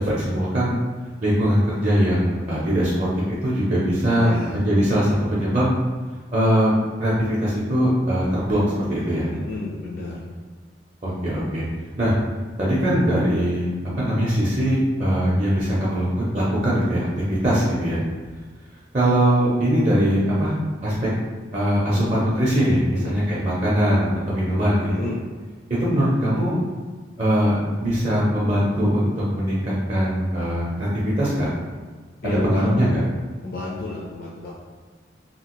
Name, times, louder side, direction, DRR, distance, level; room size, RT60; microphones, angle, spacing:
voice 1, 0.1-0.8 1.2-5.7 6.3-6.7 7.0-9.3 11.0-11.7 12.0-12.1 12.6-13.7 14.0-18.0 18.9-20.5 20.8-21.1 21.5-25.1 25.7-26.6 27.2-30.9 31.2-31.5 32.2-33.0, equal, 35° right, -7 dB, 0.6 m, -21 dB
voice 2, 4.1-4.6 9.3-10.3 21.9-22.1 22.9-23.2 24.9-25.2 32.2-33.0 33.4-34.5, left 2 dB, 55° left, -5 dB, 0.5 m, -31 dB
2.8 x 2.8 x 2.9 m, 1.4 s
head